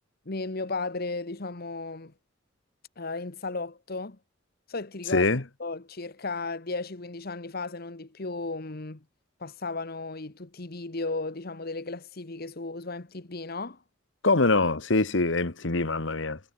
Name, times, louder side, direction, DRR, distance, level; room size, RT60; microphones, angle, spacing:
voice 1, 0.3-2.1 3.0-4.2 4.7-5.3 5.6-9.0 9.4-13.8, left 3 dB, 50° left, 1.3 m, -35 dB
voice 2, 5.1-5.4 14.2-16.4, left 3 dB, 65° left, 1.5 m, -24 dB
head